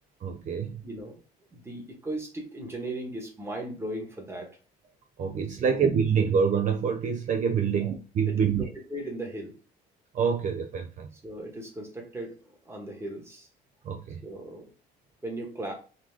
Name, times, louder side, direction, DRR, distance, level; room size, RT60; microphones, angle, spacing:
voice 1, 0.2-0.8 5.2-8.7 10.1-11.1 13.8-14.2, right 6 dB, 50° right, 0.6 m, -26 dB
voice 2, 0.8-1.2 1.5-4.5 5.6-5.8 7.7-7.9 8.3-9.5 11.2-12.4 12.6-13.5 14.2-14.7 15.2-15.7, right 1 dB, 15° right, 1.4 m, -37 dB
4.0 x 3.0 x 3.4 m
cardioid pair, 110°, 17 cm